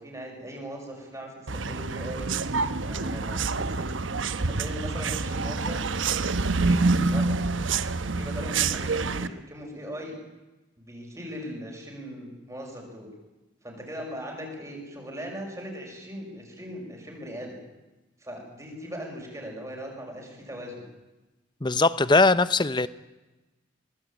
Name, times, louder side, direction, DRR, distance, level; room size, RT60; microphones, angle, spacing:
voice 1, 0.0-2.3 2.8-3.9 4.4-5.8 6.6-7.4 8.0-10.2 10.8-13.1 13.6-17.6 18.2-20.8, equal, 15° right, 0 dB, 6.2 m, -39 dB
sound 1, 1.5-9.3, right 3 dB, 80° right, 1.0 m, -27 dB
voice 2, 21.6-22.9, left 3 dB, 25° left, 16 dB, 0.7 m, -20 dB
23.5 x 19.0 x 9.0 m, 1.1 s
head